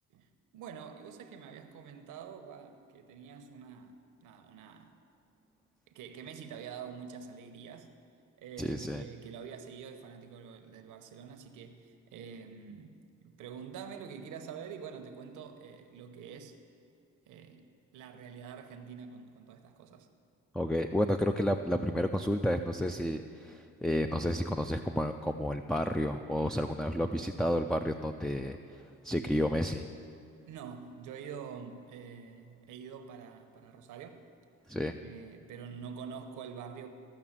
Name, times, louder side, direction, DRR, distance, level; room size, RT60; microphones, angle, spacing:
voice 1, 0.1-4.9 5.9-8.0 8.4-16.6 17.3-17.7 17.9-20.1 30.5-34.2 35.0-36.9, right 6 dB, 85° right, 7 dB, 1.0 m, -46 dB
voice 2, 8.6-9.0 20.5-29.9 34.7-35.0, equal, ahead, 6 dB, 0.3 m, -31 dB
14.5 x 5.9 x 7.3 m, 2.5 s
cardioid pair, 90°, 30 cm